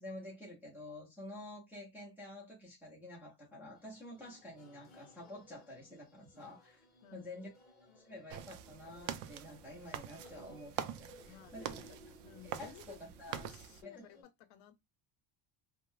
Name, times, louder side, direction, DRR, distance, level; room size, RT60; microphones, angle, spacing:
voice 1, 0.0-6.8 7.1-7.5 8.0-11.9 12.4-13.5 13.8-14.0, left 1 dB, 5° right, 0.4 m, -49 dB
sound 1, 3.7-14.2, left 1 dB, 20° left, 0.7 m, -60 dB
voice 2, 7.0-7.3 11.1-13.0 13.3-14.8, left 12 dB, 65° left, 0.6 m, -57 dB
sound 2, 8.3-13.8, right 10 dB, 85° right, 0.6 m, -45 dB
2.5 x 2.1 x 3.1 m
cardioid pair, 180°, 49 cm